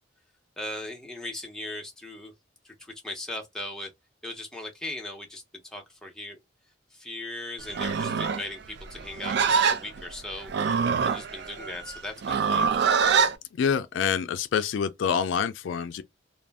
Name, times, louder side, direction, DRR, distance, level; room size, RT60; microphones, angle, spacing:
voice 1, 0.6-2.3 2.6-3.9 4.2-6.4 6.9-12.7, left 1 dB, 5° left, 0.6 m, -38 dB
Livestock farm animals working animals, 7.7-13.4, right 6 dB, 55° right, 0.4 m, -25 dB
voice 2, 13.5-16.0, left 7 dB, 70° left, 0.3 m, -26 dB
2.5 x 2.0 x 3.3 m
head